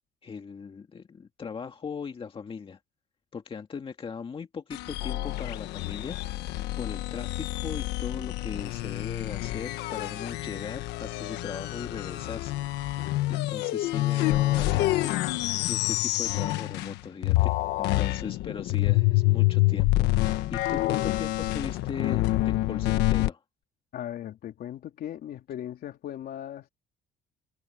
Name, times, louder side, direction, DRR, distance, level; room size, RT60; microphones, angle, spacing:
voice 1, 0.2-2.8 3.3-6.2 6.8-23.4, left 6 dB, 30° left, 1.9 m, -39 dB
sound 1, 4.7-17.0 17.2-23.3, left 17 dB, 90° left, 1.4 m, -27 dB
voice 2, 23.9-26.7, left 11 dB, 65° left, 3.6 m, -38 dB
cardioid pair, 110°, 17 cm